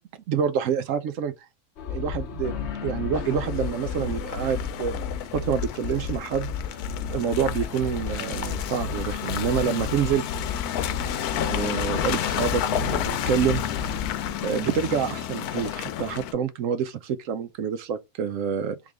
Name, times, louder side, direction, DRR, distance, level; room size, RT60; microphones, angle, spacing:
voice 1, 0.3-1.3 1.9-2.5 2.8-5.0 5.3-6.5 7.1-10.2 11.5-13.7 14.4-18.8, right 7 dB, 70° right, 0.8 m, -27 dB
sound 1, 1.8-14.3, left 6 dB, 55° left, 0.9 m, -32 dB
Car passing by / Engine, 3.1-16.3, left 10 dB, 85° left, 1.1 m, -31 dB
3.6 x 3.2 x 3.4 m
omnidirectional pair, 1.6 m